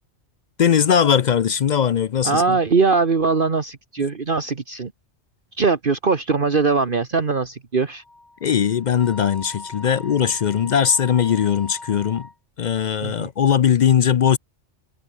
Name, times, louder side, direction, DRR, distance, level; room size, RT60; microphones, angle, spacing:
voice 1, 0.6-2.6 8.4-12.3 12.6-14.4, left 8 dB, 55° left, 0.5 m, -19 dB
voice 2, 2.2-4.9 5.5-8.0 13.0-13.3, right 4 dB, 45° right, 1.6 m, -21 dB
Wind instrument woodwind instrument, 8.0-12.3, left 2 dB, 40° left, 3.2 m, -40 dB
omnidirectional pair, 1.2 m